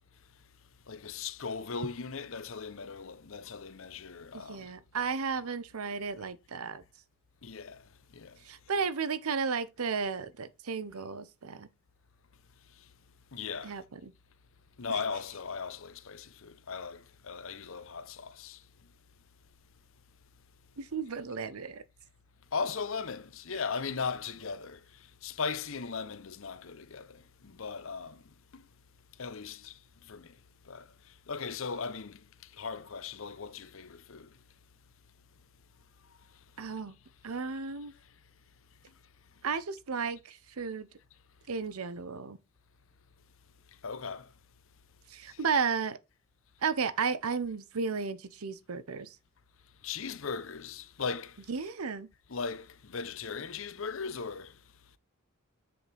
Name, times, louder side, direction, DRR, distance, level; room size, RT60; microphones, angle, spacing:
voice 1, 0.9-4.7 7.4-8.4 12.8-12.9 13.3-13.8 14.8-18.6 22.5-28.6 29.2-30.4 30.7-34.4 43.8-44.3 45.3-45.4 49.8-51.5 52.3-54.6, left 5 dB, 70° left, 0.7 m, -38 dB
voice 2, 4.3-6.8 8.4-11.7 13.6-14.1 20.8-21.8 36.6-37.0 37.2-37.9 39.4-40.9 41.5-42.4 45.1-46.0 46.6-49.2 51.5-52.1, right 5 dB, 90° right, 0.7 m, -33 dB
7.9 x 6.8 x 3.4 m
head